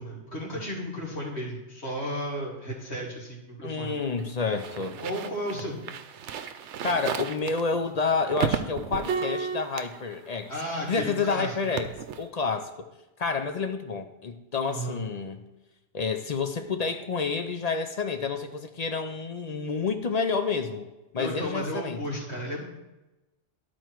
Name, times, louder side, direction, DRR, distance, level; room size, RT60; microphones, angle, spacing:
voice 1, 0.0-4.0 5.0-5.8 10.5-11.8 14.7-15.0 21.2-22.6, equal, 70° left, -4 dB, 2.7 m, -34 dB
voice 2, 3.6-5.0 6.8-10.5 10.9-11.9 12.2-12.9 13.2-15.5 15.9-20.9 21.1-22.0, left 4 dB, 45° left, 7 dB, 0.6 m, -29 dB
sound 1, 3.8-11.2 11.4-12.2, right 7 dB, 80° right, 0.9 m, -34 dB
12.0 x 4.4 x 4.5 m, 1.0 s
omnidirectional pair, 1.2 m